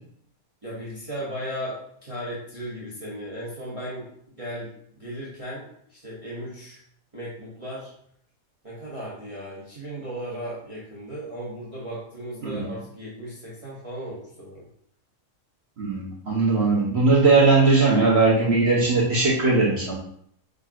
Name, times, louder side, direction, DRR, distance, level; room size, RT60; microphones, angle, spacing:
voice 1, 0.6-4.0 4.4-4.7 4.9-6.8 7.1-7.9 8.6-14.6, equal, 25° right, -8 dB, 1.2 m, -36 dB
voice 2, 15.8-19.9, right 3 dB, 50° right, -3 dB, 1.1 m, -19 dB
5.4 x 3.8 x 2.4 m, 0.66 s
omnidirectional pair, 1.5 m